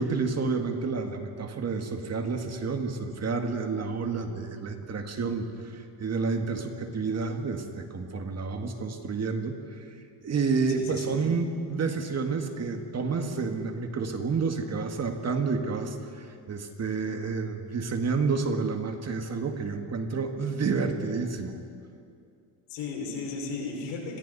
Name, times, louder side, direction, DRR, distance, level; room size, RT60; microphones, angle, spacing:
voice 1, 0.0-9.8 10.2-21.6, right 4 dB, 35° right, 5 dB, 1.9 m, -30 dB
voice 2, 10.7-11.2 22.7-24.2, left 4 dB, 80° left, -1 dB, 5.8 m, -35 dB
29.5 x 22.5 x 4.2 m, 2.5 s
cardioid pair, 120°, 45 cm